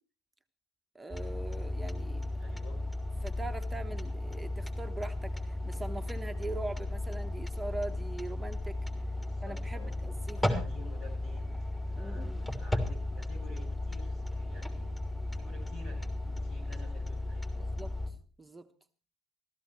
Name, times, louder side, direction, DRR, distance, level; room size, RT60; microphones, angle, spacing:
voice 1, 0.9-2.3 3.2-8.8 9.4-10.5 11.9-12.4 17.6-18.7, right 2 dB, 15° right, 1.0 m, -42 dB
sound 1, 1.1-18.1, left 1 dB, 10° left, 3.0 m, -35 dB
voice 2, 2.4-2.8 9.1-10.0 10.3-15.0 15.4-17.7, left 3 dB, 50° left, 7.3 m, -52 dB
15.0 x 14.0 x 4.6 m
figure-of-eight pair, 60°, 0 cm